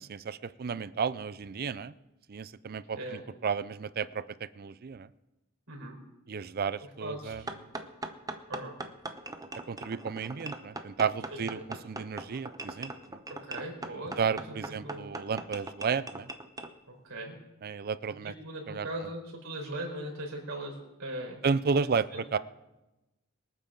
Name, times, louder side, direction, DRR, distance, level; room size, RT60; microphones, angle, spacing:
voice 1, 0.0-1.9 2.3-4.2 4.6-5.1 6.3-7.4 9.7-11.6 11.8-13.2 14.2-16.3 17.6-18.3 18.7-19.1 21.4-22.4, right 5 dB, 45° right, 16 dB, 0.4 m, -32 dB
voice 2, 5.7-6.0 7.0-7.5 8.5-8.7 11.3-11.6 13.4-14.2 14.5-14.6 14.8-15.0 16.9-17.3 18.2-21.4 21.8-22.2, right 1 dB, 65° right, 1 dB, 4.5 m, -39 dB
sound 1, 7.5-16.7, right 2 dB, 15° right, 0.8 m, -40 dB
24.0 x 8.9 x 3.9 m, 1.0 s
head